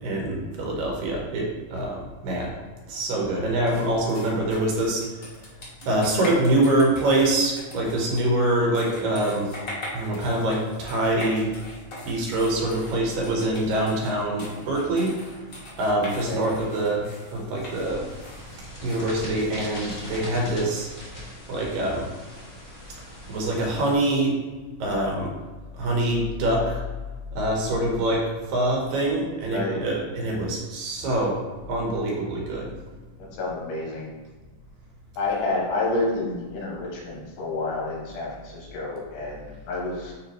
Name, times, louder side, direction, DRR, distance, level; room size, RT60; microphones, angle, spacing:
voice 1, 0.0-2.5 2.9-5.0 5.9-9.6 9.9-11.5 12.0-15.2 15.8-17.0 17.3-18.0 18.8-20.9 21.5-22.1 23.3-24.3 24.8-25.3 25.8-26.8 27.3-31.4 31.7-32.7, right 1 dB, 80° right, -2 dB, 3.0 m, -24 dB
sound 1, 3.7-20.0, left 1 dB, 55° left, 0.8 m, -41 dB
sound 2, 17.7-23.9, left 1 dB, 20° left, 1.4 m, -40 dB
voice 2, 29.5-29.8 33.2-34.1 35.2-40.1, left 2 dB, 80° left, -2 dB, 2.9 m, -29 dB
9.5 x 3.5 x 3.1 m, 1.3 s
omnidirectional pair, 3.9 m